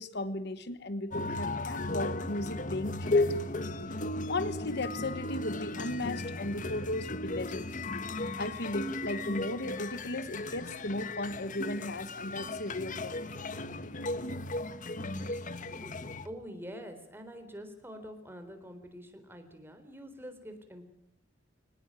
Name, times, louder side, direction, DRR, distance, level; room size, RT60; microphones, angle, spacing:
voice 1, 0.0-3.6 4.3-7.8 8.4-13.3, left 2 dB, 60° left, 13 dB, 1.2 m, -36 dB
sound 1, 1.1-16.3, left 2 dB, 45° left, 1.4 m, -35 dB
voice 2, 15.3-20.9, equal, 10° right, 7 dB, 3.9 m, -46 dB
24.0 x 19.5 x 9.0 m, 0.80 s
head